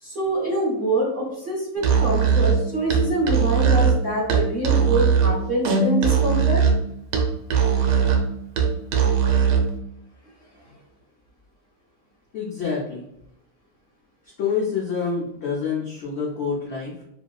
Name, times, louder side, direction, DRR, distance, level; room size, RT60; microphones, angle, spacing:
voice 1, 0.0-6.6 10.6-10.7, right 1 dB, 35° right, -6 dB, 1.1 m, -25 dB
Musical instrument, 1.8-9.7, right 6 dB, 70° right, 0.9 m, -20 dB
voice 2, 12.3-13.0 14.4-17.0, left 5 dB, 70° left, -4 dB, 0.6 m, -27 dB
3.0 x 2.7 x 2.2 m, 0.76 s
omnidirectional pair, 1.8 m